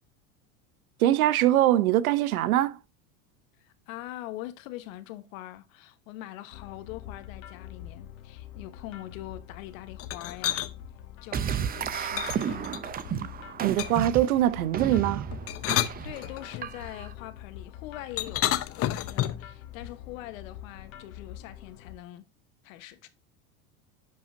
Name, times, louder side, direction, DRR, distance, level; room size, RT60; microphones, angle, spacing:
voice 1, 1.0-2.8 13.6-15.3, right 13 dB, 85° right, 0.7 m, -23 dB
voice 2, 3.6-10.7 11.2-12.7 16.0-22.2 22.6-23.1, left 15 dB, 70° left, 1.2 m, -43 dB
sound 1, 6.5-22.0, left 11 dB, 90° left, 1.3 m, -45 dB
sound 2, 10.0-10.7 12.2-13.1 13.8-14.2 15.3-16.6 18.2-19.5, left 13 dB, 35° left, 0.7 m, -30 dB
sound 3, 11.3-17.1, right 8 dB, 20° right, 0.5 m, -33 dB
10.5 x 5.5 x 2.6 m
supercardioid pair, 105°, 41 cm